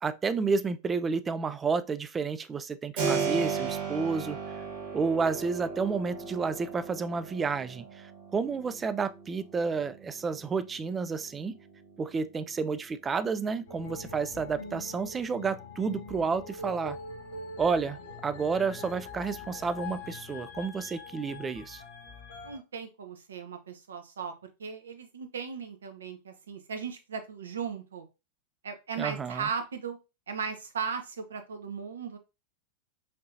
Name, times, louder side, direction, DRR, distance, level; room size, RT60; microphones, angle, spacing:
voice 1, 0.0-4.4 4.9-11.6 12.0-17.0 17.6-21.8 29.0-29.4, right 5 dB, 20° right, 0.3 m, -31 dB
Keyboard (musical), 3.0-13.6, right 5 dB, 50° right, 1.7 m, -37 dB
sound 1, 13.7-22.6, left 3 dB, 65° left, 1.6 m, -43 dB
voice 2, 22.4-24.3 24.6-28.1 28.6-30.0 30.3-32.2, right 6 dB, 70° right, 0.7 m, -37 dB
5.1 x 2.7 x 2.7 m
figure-of-eight pair, 90°, 0 cm